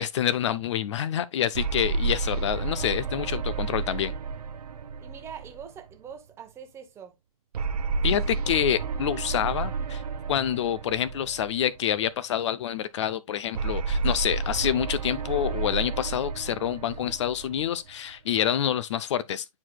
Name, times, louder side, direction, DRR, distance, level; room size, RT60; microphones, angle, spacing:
voice 1, 0.0-4.1 8.0-10.0 10.3-19.5, left 10 dB, 50° left, 0.5 m, -27 dB
sound 1, 1.5-6.1 7.5-11.9 13.5-18.1, right 4 dB, 85° right, 0.8 m, -31 dB
voice 2, 5.0-7.2, right 7 dB, 15° right, 0.9 m, -43 dB
9.6 x 4.7 x 2.2 m
hypercardioid pair, 150°, 19 cm